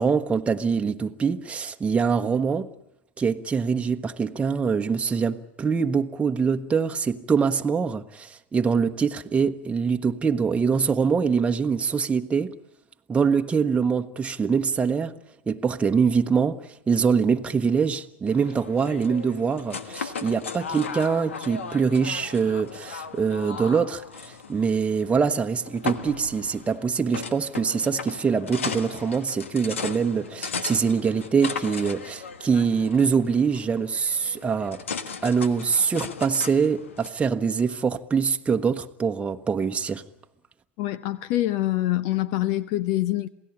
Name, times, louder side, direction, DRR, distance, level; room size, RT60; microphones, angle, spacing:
voice 1, 0.0-2.7 3.2-12.6 13.1-15.2 15.5-34.8 35.2-40.0, right 6 dB, 20° right, 1.1 m, -24 dB
sound 1, 18.3-37.1, left 5 dB, 90° left, 1.4 m, -37 dB
voice 2, 40.8-43.3, left 15 dB, 60° left, 0.8 m, -25 dB
27.5 x 17.0 x 8.7 m
hypercardioid pair, 95°, 7 cm